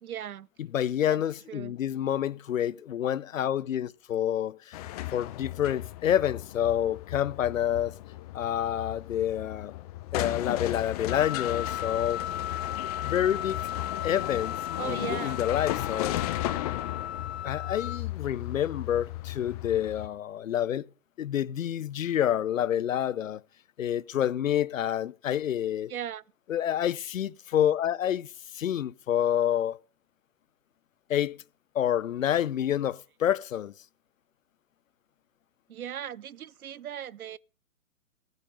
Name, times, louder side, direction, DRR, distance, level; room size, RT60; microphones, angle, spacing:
voice 1, 0.0-0.5 1.1-1.2 1.5-1.7 14.8-15.4 25.9-26.2 35.7-37.4, right 10 dB, 80° right, 0.6 m, -37 dB
voice 2, 0.6-4.8 5.1-7.9 8.3-9.7 10.1-12.2 13.0-13.7 14.0-14.6 14.8-16.2 17.4-20.8 21.2-23.4 23.8-25.9 26.5-28.3 28.5-29.8 31.1-31.4 31.7-33.7, left 10 dB, 65° left, 0.8 m, -28 dB
sound 1, 4.7-20.1, left 16 dB, 25° left, 0.7 m, -35 dB
Wind instrument woodwind instrument, 11.1-18.0, left 10 dB, 45° left, 1.3 m, -36 dB
15.5 x 9.3 x 5.2 m
figure-of-eight pair, 125°, 42 cm